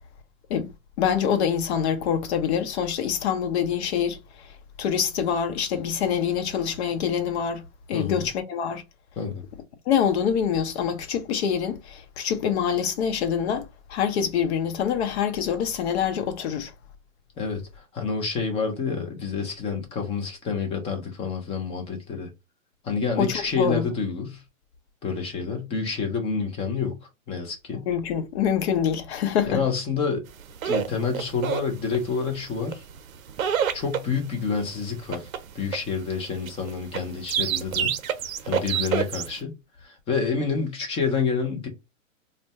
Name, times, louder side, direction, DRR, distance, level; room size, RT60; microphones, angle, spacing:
voice 1, 1.0-8.8 9.9-16.7 23.2-23.9 27.9-29.6, left 8 dB, 55° left, 0.8 m, -25 dB
voice 2, 17.4-22.3 22.8-24.4 25.0-27.0 27.3-27.9 29.5-30.3 30.6-32.8 33.7-35.3 35.5-37.9 38.4-41.7, left 5 dB, 15° left, 0.5 m, -28 dB
sound 1, 30.4-39.4, right 8 dB, 85° right, 0.6 m, -28 dB
2.5 x 2.2 x 3.4 m
hypercardioid pair, 135°, 40 cm